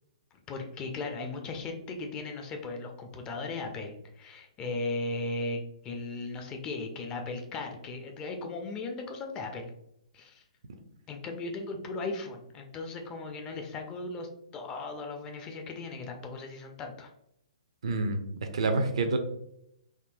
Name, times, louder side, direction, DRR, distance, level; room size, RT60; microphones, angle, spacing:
voice 1, 0.5-9.7 10.1-10.4 11.1-17.1, left 3 dB, 20° left, 3 dB, 0.4 m, -37 dB
voice 2, 17.8-18.2 18.5-19.2, right 3 dB, 60° right, 6 dB, 0.5 m, -27 dB
3.6 x 2.6 x 2.4 m, 0.77 s
figure-of-eight pair, 120°, 4 cm